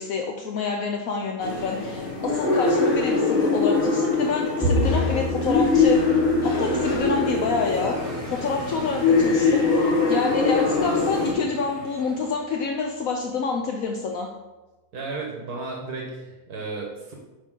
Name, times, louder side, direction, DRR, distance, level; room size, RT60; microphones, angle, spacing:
voice 1, 0.0-6.1 6.4-14.3, left 4 dB, 70° left, 2 dB, 1.1 m, -27 dB
sound 1, 1.4-11.3, left 3 dB, 35° left, 1.6 m, -23 dB
Bowed string instrument, 4.6-10.9, equal, 5° right, 2.0 m, -31 dB
sound 2, 7.4-12.5, right 1 dB, 45° right, 1.7 m, -42 dB
voice 2, 14.9-17.1, right 3 dB, 75° right, -1 dB, 1.7 m, -33 dB
8.7 x 5.4 x 3.8 m, 1.1 s
omnidirectional pair, 1.6 m